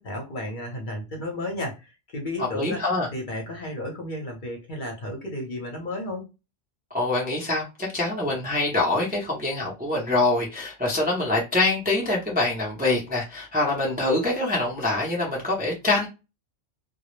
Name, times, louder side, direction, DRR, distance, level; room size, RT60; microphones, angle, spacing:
voice 1, 0.0-2.8 3.1-6.3, left 1 dB, 50° left, 0.8 m, -33 dB
voice 2, 2.5-3.1 6.9-16.1, left 2 dB, 10° right, 0.4 m, -25 dB
2.2 x 2.0 x 3.0 m
omnidirectional pair, 1.2 m